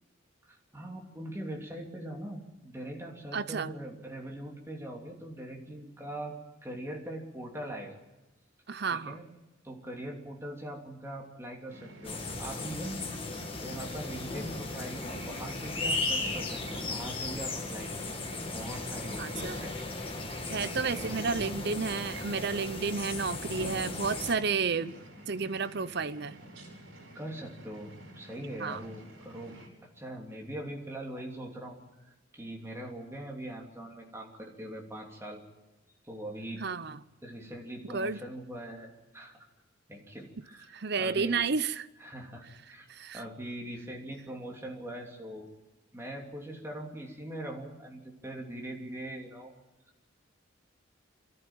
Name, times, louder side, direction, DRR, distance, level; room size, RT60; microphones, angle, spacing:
voice 1, 0.5-6.4 6.6-7.9 8.9-9.3 9.6-13.0 13.6-19.7 20.9-21.3 27.1-29.6 29.8-35.4 36.0-36.6 37.2-39.5 39.9-41.4 42.0-42.9 43.1-45.5 45.9-49.5, right 1 dB, 15° right, 0 dB, 3.1 m, -42 dB
voice 2, 3.3-3.7 8.7-9.2 19.2-19.6 20.5-24.9 25.3-26.4 28.6-28.8 36.6-37.0 37.9-38.2 40.7-41.9 42.9-43.2, right 5 dB, 55° right, 15 dB, 0.7 m, -31 dB
sound 1, 11.7-29.7, right 1 dB, 70° right, 5.4 m, -49 dB
sound 2, 12.0-24.4, left 2 dB, 25° left, 2.0 m, -36 dB
24.0 x 14.0 x 9.0 m, 1.1 s
head